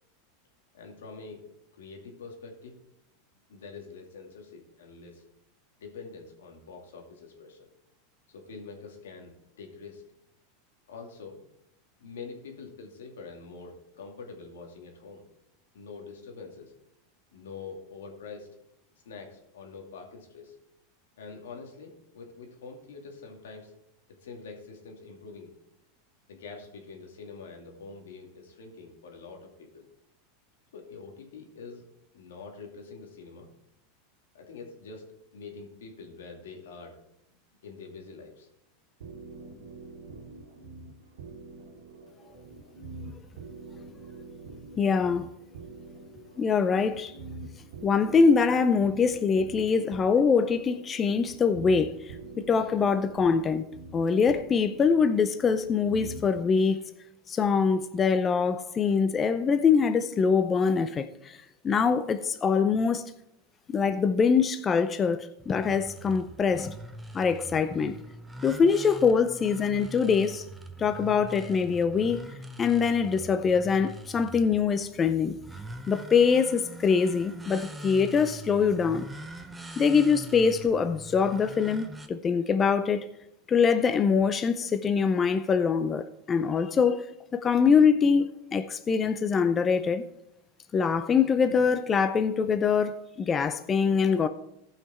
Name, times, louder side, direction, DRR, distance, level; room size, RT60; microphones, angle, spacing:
voice 1, 0.7-1.4 1.7-2.8 3.5-5.2 5.8-7.7 8.3-10.0 10.9-11.4 12.0-15.2 15.7-16.7 17.3-18.5 19.0-20.6 21.2-23.7 24.2-25.5 26.3-29.9 30.7-31.8 32.1-33.5 34.3-35.1 35.3-37.0 37.6-38.5, left 4 dB, 90° left, 2.5 m, -45 dB
sound 1, 39.0-56.5, right 3 dB, 80° right, 1.8 m, -45 dB
voice 2, 44.8-45.3 46.4-47.1 47.8-52.2 52.5-53.7 53.9-56.8 57.3-61.4 61.6-63.0 63.7-66.7 67.1-68.0 68.4-70.4 70.8-72.2 72.6-75.4 75.9-79.1 79.8-83.0 83.5-87.1 87.3-90.0 90.7-94.3, left 5 dB, 25° left, 0.5 m, -24 dB
sound 2, 65.4-82.1, right 2 dB, 10° right, 0.9 m, -43 dB
15.0 x 5.8 x 4.3 m
supercardioid pair, 120°, 0 cm